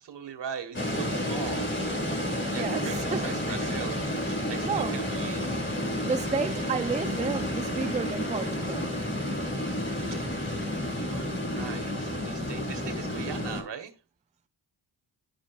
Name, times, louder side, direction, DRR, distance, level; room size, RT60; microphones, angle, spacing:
voice 1, 0.0-2.1 2.5-5.5 10.1-10.4 10.9-13.9, right 7 dB, 70° right, 1.8 m, -40 dB
sound 1, 0.7-13.6, left 1 dB, 25° left, 2.9 m, -31 dB
voice 2, 2.5-3.3 4.6-5.1 6.0-8.9, right 5 dB, 15° right, 0.5 m, -31 dB
13.0 x 5.0 x 2.5 m
cardioid pair, 70°, 44 cm